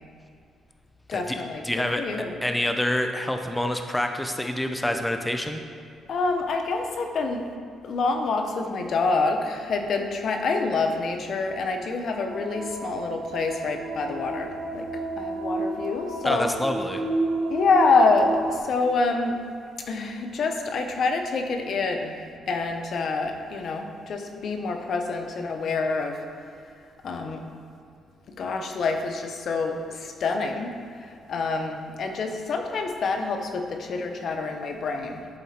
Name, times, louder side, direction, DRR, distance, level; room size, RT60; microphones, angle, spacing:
voice 1, 1.1-2.3 6.1-7.4 7.8-16.5 17.5-19.4 19.9-26.2 27.0-27.5 28.4-30.7 31.0-35.4, left 3 dB, 60° left, 5 dB, 0.8 m, -27 dB
voice 2, 1.6-2.0 2.4-5.6 16.2-17.0, left 1 dB, 10° left, 5 dB, 0.5 m, -27 dB
sound 1, 12.3-18.6, right 2 dB, 85° right, 0.8 m, -31 dB
11.0 x 4.2 x 4.3 m, 2.3 s
cardioid pair, 90°, 0 cm